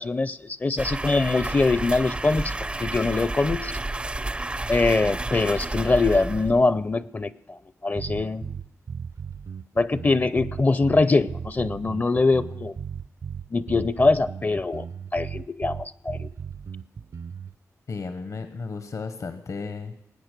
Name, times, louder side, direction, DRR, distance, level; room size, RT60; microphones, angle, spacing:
voice 1, 0.0-3.7 4.7-7.6 7.8-8.5 9.8-12.7 13.5-14.8 15.1-16.3, left 3 dB, 35° left, 17 dB, 0.5 m, -23 dB
sound 1, 0.8-6.8, right 2 dB, 20° right, 0.4 m, -31 dB
sound 2, 8.0-17.5, right 6 dB, 65° right, 0.6 m, -36 dB
voice 2, 17.9-19.9, left 4 dB, 70° left, 10 dB, 1.1 m, -34 dB
19.5 x 8.8 x 6.7 m, 0.81 s
wide cardioid pair, 90°, 6 cm